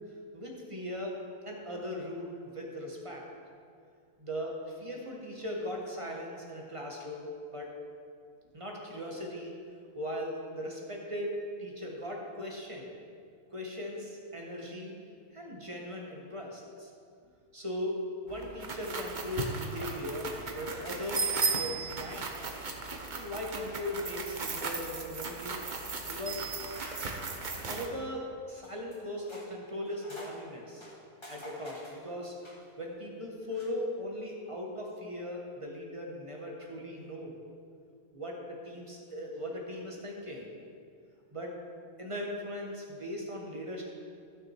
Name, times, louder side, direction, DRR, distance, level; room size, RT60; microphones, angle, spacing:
voice 1, 0.3-1.2 1.4-3.3 4.2-7.7 8.5-9.6 9.9-12.9 13.5-15.0 15.3-16.9 17.5-22.3 23.1-25.6 26.0-26.5 27.4-30.9 31.3-32.3 32.8-37.4 38.1-40.5 41.3-41.6 42.0-43.8, left 1 dB, 20° right, -1 dB, 1.3 m, -39 dB
sound 1, 18.3-27.9, right 4 dB, 40° right, 0.8 m, -36 dB
sound 2, 19.3-19.6 19.8-20.2 20.6-21.3 21.6-21.7 22.0-22.1 22.5-22.8 23.7-24.2 24.6-25.4 26.8-27.7 28.5-29.5 29.8-30.4 30.8-32.7 33.4-33.7, equal, 20° left, 2.1 m, -50 dB
14.5 x 6.3 x 4.5 m, 2.3 s
omnidirectional pair, 1.6 m